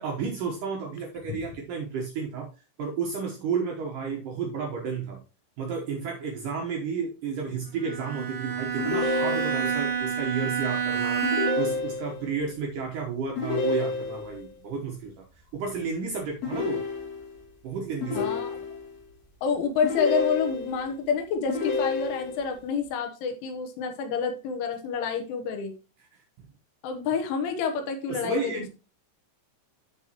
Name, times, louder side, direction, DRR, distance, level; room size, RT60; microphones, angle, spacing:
voice 1, 0.0-2.5 2.8-5.2 5.6-15.3 15.5-16.9 17.6-18.3 28.1-28.7, right 5 dB, 90° right, 0 dB, 1.8 m, -32 dB
Bowed string instrument, 7.8-11.9, right 7 dB, 50° right, 1.9 m, -29 dB
sound 1, 8.8-9.8 11.2-12.3 13.4-14.4 16.4-17.4 18.0-19.0 19.8-20.9 21.5-22.5, left 4 dB, 40° left, 3.4 m, -30 dB
voice 2, 18.2-18.6 19.4-25.8 26.8-28.7, left 6 dB, 75° left, 5 dB, 3.4 m, -28 dB
14.0 x 4.8 x 2.9 m, 0.32 s
omnidirectional pair, 5.8 m